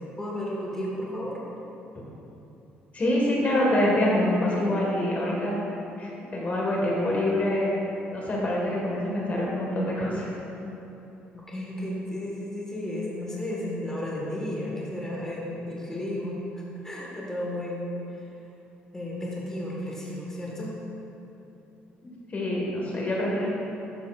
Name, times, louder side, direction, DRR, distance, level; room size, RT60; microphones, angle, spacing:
voice 1, 0.2-1.4 11.5-16.4 16.8-17.8 18.9-20.7, left 1 dB, 15° left, -5 dB, 1.7 m, -33 dB
voice 2, 2.9-5.6 6.0-7.7 8.1-10.3 22.3-23.5, left 1 dB, 40° left, -3 dB, 1.7 m, -25 dB
12.0 x 7.1 x 2.5 m, 3.0 s
cardioid pair, 90°, 4 cm